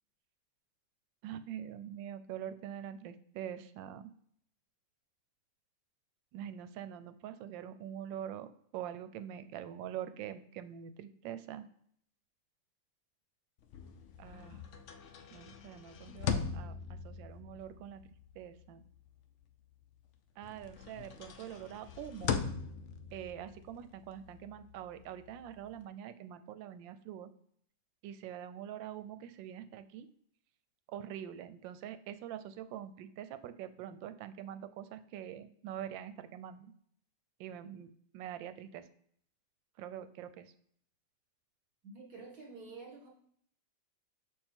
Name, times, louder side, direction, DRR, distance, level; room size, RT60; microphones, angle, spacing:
voice 1, 1.2-4.1 6.3-11.7 14.2-14.6 15.3-18.0 18.4-18.8 20.4-22.4 23.1-27.3 28.0-30.1 30.9-36.7 37.4-38.8 39.8-40.5, right 10 dB, 90° right, 12 dB, 1.3 m, -44 dB
sound 1, 13.6-20.1 20.4-25.8, left 6 dB, 85° left, 0.6 m, -41 dB
voice 2, 41.9-43.1, right 4 dB, 60° right, 0 dB, 2.3 m, -49 dB
6.8 x 3.6 x 4.3 m, 0.65 s
omnidirectional pair, 2.0 m